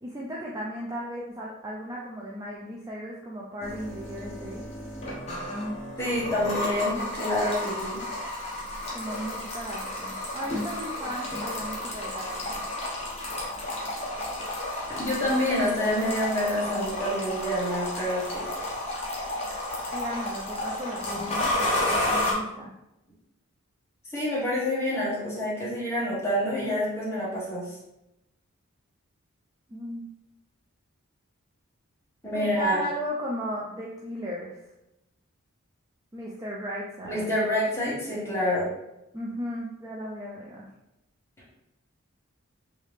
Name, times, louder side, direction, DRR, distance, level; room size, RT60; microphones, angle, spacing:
voice 1, 0.0-4.7 8.9-12.6 19.9-22.7 29.7-30.1 32.3-34.6 36.1-37.3 39.1-40.7, equal, 15° right, -4 dB, 0.3 m, -36 dB
sound 1, 3.6-22.3, left 1 dB, 30° left, 0.8 m, -32 dB
voice 2, 6.0-8.0 14.9-18.5 24.1-27.8 32.2-32.8 37.0-38.7, left 1 dB, 10° left, -8 dB, 1.1 m, -27 dB
3.4 x 2.7 x 3.2 m, 0.90 s
head